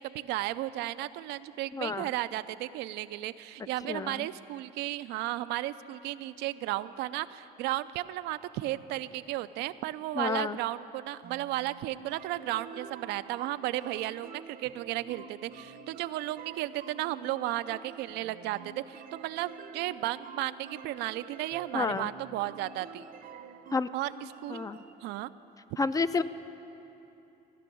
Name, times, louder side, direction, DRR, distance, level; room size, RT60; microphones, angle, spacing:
voice 1, 0.0-23.1 23.9-24.1 24.4-24.6 25.0-25.3, right 15 dB, 85° right, 13 dB, 0.4 m, -34 dB
voice 2, 1.7-2.1 3.9-4.3 10.2-10.6 21.7-22.1 23.7-23.9 24.5-24.8 25.8-26.2, left 4 dB, 20° left, 13 dB, 0.3 m, -30 dB
sound 1, 11.2-24.9, right 6 dB, 55° right, 0.7 m, -48 dB
16.0 x 6.0 x 9.9 m, 3.0 s
cardioid pair, 110°, 17 cm